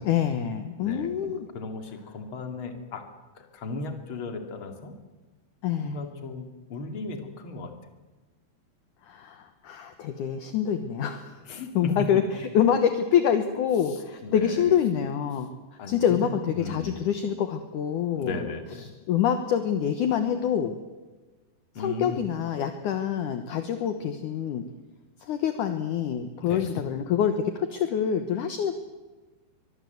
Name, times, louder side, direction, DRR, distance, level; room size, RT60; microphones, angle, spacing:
voice 1, 0.0-1.5 5.6-6.0 9.0-11.4 11.7-15.5 15.9-18.4 19.1-20.8 21.8-24.6 25.2-28.7, left 8 dB, 65° left, 8 dB, 2.1 m, -26 dB
voice 2, 0.8-3.0 3.3-4.9 5.8-7.7 11.4-11.9 13.9-14.7 15.8-17.0 18.2-18.9 21.7-22.2 26.4-26.7, left 3 dB, 35° left, 5 dB, 2.5 m, -37 dB
24.0 x 21.5 x 8.0 m, 1.2 s
omnidirectional pair, 5.0 m